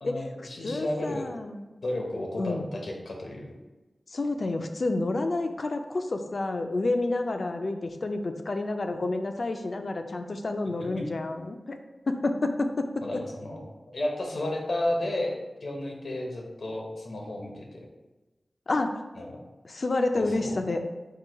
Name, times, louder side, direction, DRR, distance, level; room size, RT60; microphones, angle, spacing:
voice 1, 0.0-1.3 1.8-3.6 10.9-11.0 13.0-15.3 15.6-17.8 19.2-19.4 20.1-20.5, left 1 dB, 80° left, 0 dB, 0.8 m, -33 dB
voice 2, 0.6-1.6 2.4-2.7 4.1-11.8 12.1-13.0 18.7-19.0 19.6-20.9, left 2 dB, 55° left, 6 dB, 0.4 m, -29 dB
4.6 x 2.2 x 4.4 m, 1.1 s
wide cardioid pair, 100°, 0 cm